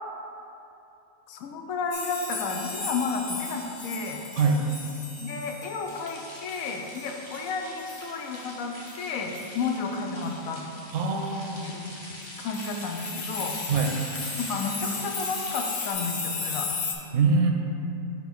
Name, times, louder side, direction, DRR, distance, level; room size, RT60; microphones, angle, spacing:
voice 1, 1.3-4.2 5.2-10.6 11.6-11.9 12.4-13.5 14.4-16.7, left 4 dB, 80° left, 3 dB, 1.0 m, -32 dB
sound 1, 1.9-8.1 8.3-8.4 8.7-9.0 9.3-9.5 10.2-10.3 12.2-16.9, left 4 dB, 60° left, 0.4 m, -35 dB
sound 2, 5.9-15.9, left 1 dB, 25° left, 0.7 m, -44 dB
voice 2, 10.9-11.6 13.7-14.0 17.1-17.5, right 4 dB, 70° right, 3 dB, 0.8 m, -23 dB
5.3 x 4.5 x 4.2 m, 2.8 s
omnidirectional pair, 1.5 m